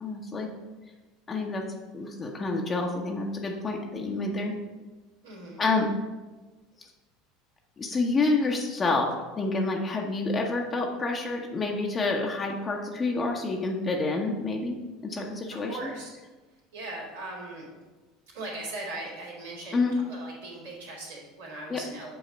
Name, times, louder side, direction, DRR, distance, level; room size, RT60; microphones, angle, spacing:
voice 1, 0.0-0.5 1.3-1.6 1.9-4.5 5.6-5.9 7.8-15.8 19.7-19.9 21.7-21.8, left 3 dB, 25° left, 0 dB, 0.9 m, -28 dB
voice 2, 5.2-5.6 15.5-16.1 16.7-17.8 18.3-22.2, right 2 dB, 75° right, -6 dB, 2.5 m, -39 dB
8.0 x 4.1 x 5.2 m, 1.2 s
figure-of-eight pair, 70°, 0 cm